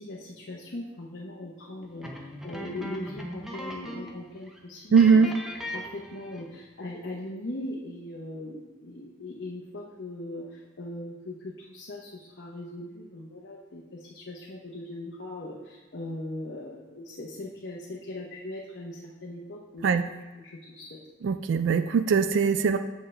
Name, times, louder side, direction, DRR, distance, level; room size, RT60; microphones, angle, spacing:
voice 1, 0.0-2.1 2.4-5.3 5.6-21.0, left 1 dB, 55° left, -3 dB, 0.9 m, -40 dB
sound 1, 2.0-4.2 4.5-4.6 4.9-6.6, equal, 5° right, 0.7 m, -39 dB
voice 2, 4.9-5.3 19.8-20.0 21.2-22.8, right 5 dB, 70° right, 10 dB, 0.3 m, -21 dB
7.7 x 7.2 x 3.3 m, 1.2 s
head